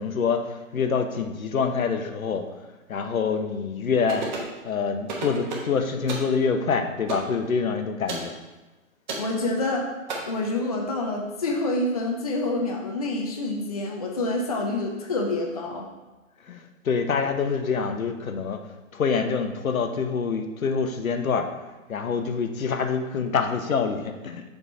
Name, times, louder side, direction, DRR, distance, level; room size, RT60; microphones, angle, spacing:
voice 1, 0.0-2.4 2.9-4.2 4.6-8.3 16.5-18.6 18.9-21.5 21.9-24.4, left 5 dB, 80° left, 7 dB, 0.9 m, -26 dB
sound 1, 4.1-4.5 5.1-5.7 6.1-6.3 7.1-7.3 8.1-8.3 9.1-9.3 10.1-10.2, right 3 dB, 35° right, 1.1 m, -31 dB
voice 2, 9.2-9.9 10.3-15.9, left 2 dB, 30° left, 1 dB, 0.5 m, -27 dB
6.9 x 3.6 x 4.2 m, 1.1 s
hypercardioid pair, 160°, 41 cm